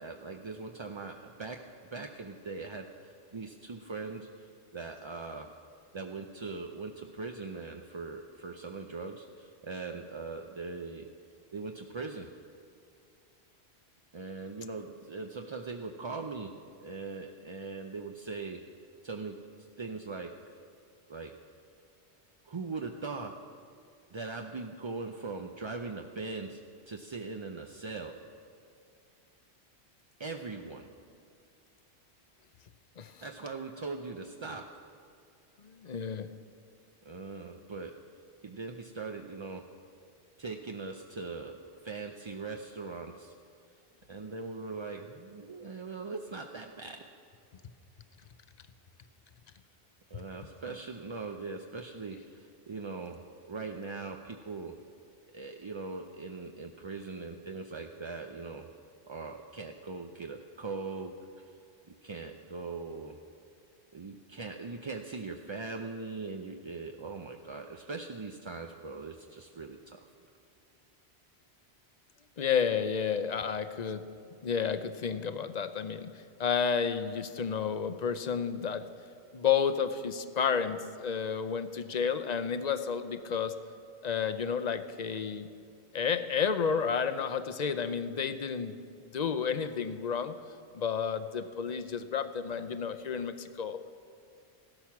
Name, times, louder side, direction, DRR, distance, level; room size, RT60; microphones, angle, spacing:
voice 1, 0.0-5.5 5.9-11.1 11.5-12.3 14.1-18.7 19.0-19.4 19.8-20.3 21.1-21.4 22.5-23.5 24.1-28.2 30.2-30.9 33.2-34.8 37.0-38.0 38.4-39.7 40.4-43.3 44.1-47.1 50.1-54.8 55.3-58.7 59.1-61.2 61.9-63.2 63.9-70.1, right 4 dB, 35° right, 4 dB, 0.5 m, -40 dB
voice 2, 35.6-36.3 72.4-74.0 74.4-78.9 79.3-83.5 84.0-85.5 85.9-88.8 89.0-90.4 90.7-93.8, left 6 dB, 45° left, 10 dB, 0.7 m, -31 dB
16.5 x 13.0 x 5.9 m, 2.4 s
omnidirectional pair, 1.1 m